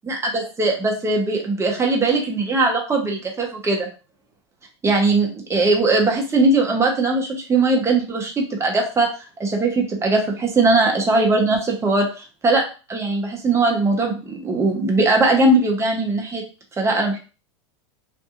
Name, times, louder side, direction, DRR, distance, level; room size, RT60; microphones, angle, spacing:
voice 1, 0.1-3.9 4.8-9.1 9.4-12.6 12.9-16.4 16.8-17.2, right 2 dB, 15° right, 1 dB, 0.8 m, -20 dB
2.6 x 2.5 x 2.4 m, 0.34 s
hypercardioid pair, 110°, 16 cm